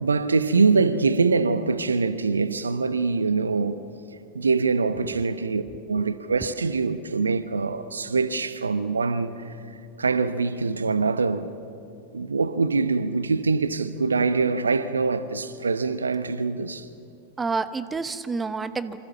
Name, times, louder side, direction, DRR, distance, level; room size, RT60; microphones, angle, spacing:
voice 1, 0.0-3.8 4.3-5.6 5.9-9.5 10.0-11.5 12.1-16.9, right 4 dB, 75° right, 0.9 m, -24 dB
voice 2, 6.0-6.3 17.4-19.0, right 4 dB, 15° right, 1.0 m, -30 dB
27.5 x 25.5 x 7.2 m
figure-of-eight pair, 90°, 0 cm